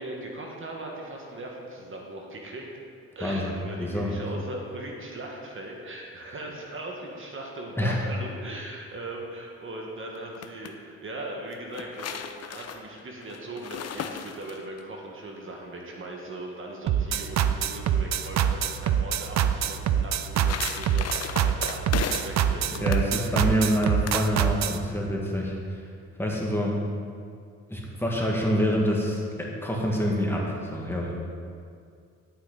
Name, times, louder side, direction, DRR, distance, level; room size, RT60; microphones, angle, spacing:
voice 1, 0.0-2.7 3.2-23.6, right 1 dB, 45° right, 0 dB, 1.7 m, -39 dB
voice 2, 3.2-4.1 7.8-8.0 22.5-25.9 26.2-26.8 27.7-31.1, equal, 10° left, -3 dB, 1.9 m, -27 dB
sound 1, 10.1-10.7 11.5-14.8 20.0-22.4 22.7-23.1 23.8-24.2, left 7 dB, 55° left, 0.7 m, -35 dB
sound 2, 16.9-24.8, right 9 dB, 65° right, 0.6 m, -24 dB
11.5 x 8.7 x 4.1 m, 2.3 s
cardioid pair, 90°, 30 cm